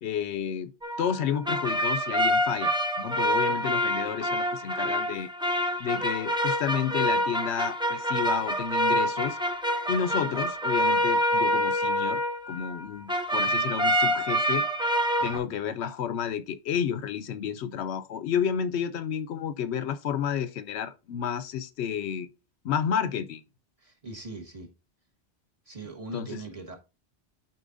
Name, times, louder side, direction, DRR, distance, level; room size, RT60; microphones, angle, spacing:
voice 1, 0.0-0.7 1.0-5.3 5.8-9.4 9.9-12.2 12.5-14.7 15.2-22.3 22.6-23.4 26.1-26.4, left 8 dB, 80° left, 0.8 m, -31 dB
sound 1, 0.8-12.8 13.1-15.4, equal, 5° right, 0.5 m, -26 dB
voice 2, 23.8-24.7 25.6-26.8, right 2 dB, 30° right, 1.5 m, -41 dB
11.5 x 4.4 x 2.5 m
omnidirectional pair, 1.1 m